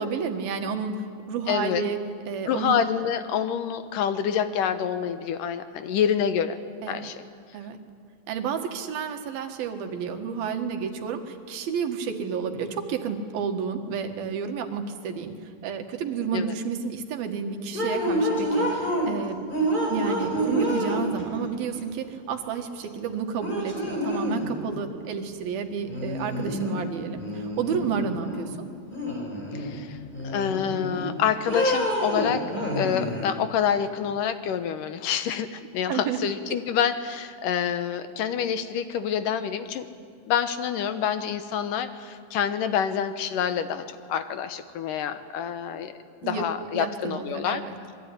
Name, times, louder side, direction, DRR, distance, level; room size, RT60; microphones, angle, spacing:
voice 1, 0.0-2.0 2.3-2.8 6.8-7.1 7.5-7.8 8.3-19.4 19.9-28.6 35.9-36.2 46.2-46.4 46.7-47.7, right 6 dB, 85° right, 5 dB, 3.5 m, -31 dB
voice 2, 1.5-1.8 2.4-6.6 6.9-7.2 16.3-16.5 29.5-30.0 30.2-32.4 32.8-39.9 40.3-45.9 46.2-47.6, left 8 dB, 75° left, 10 dB, 2.5 m, -27 dB
sound 1, 17.7-19.1 19.5-21.4 22.8-22.9 23.4-24.5 25.9-26.8 27.2-28.4 28.9-29.8 30.1-31.1 31.5-33.3, equal, 10° left, 4.9 m, -28 dB
26.0 x 22.0 x 9.9 m, 2.2 s
omnidirectional pair, 4.1 m